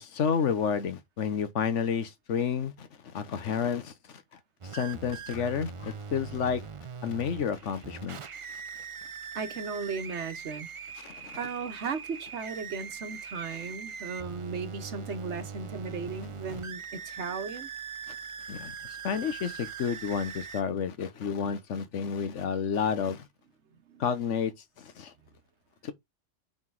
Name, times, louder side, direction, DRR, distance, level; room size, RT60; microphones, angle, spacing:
voice 1, 0.0-3.9 4.7-6.6 7.0-8.2 11.0-11.4 18.1-18.2 18.5-18.7 19.0-23.3 24.0-24.5 24.8-25.1 25.8-25.9, left 7 dB, 90° left, 1.3 m, -30 dB
sound 1, 4.6-20.6, right 6 dB, 40° right, 0.4 m, -41 dB
voice 2, 9.3-10.7 11.4-17.7 23.9-24.0, right 5 dB, 70° right, 1.3 m, -36 dB
5.8 x 4.0 x 4.7 m
omnidirectional pair, 1.2 m